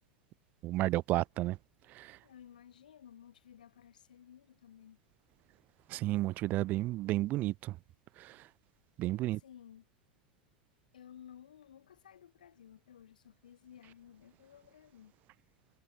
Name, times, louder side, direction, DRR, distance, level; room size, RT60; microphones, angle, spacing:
voice 1, 0.6-1.6 1.9-2.2 5.9-7.8 8.2-8.5 9.0-9.4, right 17 dB, 40° right, 0.5 m, -32 dB
voice 2, 2.2-5.0 9.2-9.8 10.9-15.1, left 9 dB, 70° left, 4.0 m, -56 dB
figure-of-eight pair, 85°, 5 cm